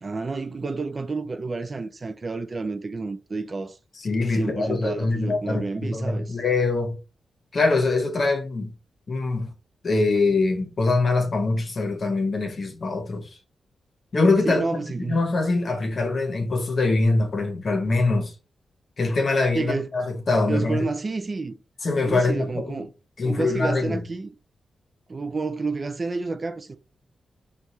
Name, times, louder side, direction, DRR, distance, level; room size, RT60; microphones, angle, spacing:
voice 1, 0.0-3.8 4.3-6.4 14.4-15.2 19.5-19.9 20.5-21.6 22.0-22.9 23.2-24.3 25.1-26.8, right 3 dB, 30° right, 0.3 m, -30 dB
voice 2, 4.0-6.9 7.5-8.7 9.1-9.5 9.8-13.3 14.1-18.3 19.0-20.9 21.8-22.8 23.2-24.0, left 3 dB, 40° left, 0.9 m, -23 dB
6.2 x 2.3 x 2.7 m
wide cardioid pair, 150°, 0 cm